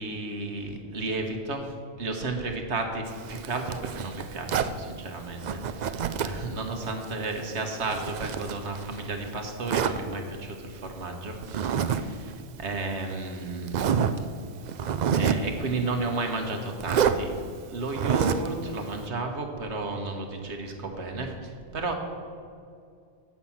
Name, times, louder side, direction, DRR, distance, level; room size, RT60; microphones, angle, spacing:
voice 1, 0.0-12.3 12.6-14.0 15.1-17.3 17.7-21.9, right 3 dB, 90° right, 3 dB, 1.5 m, -33 dB
Zipper (clothing), 3.1-4.8 5.4-6.5 6.8-9.1 9.7-10.0 11.4-12.0 12.3-12.4 13.1-13.2 13.7-14.2 14.7-15.5 16.8-17.2 17.9-18.5, right 8 dB, 55° right, 0.5 m, -27 dB
8.6 x 5.9 x 7.2 m, 2.3 s
omnidirectional pair, 1.1 m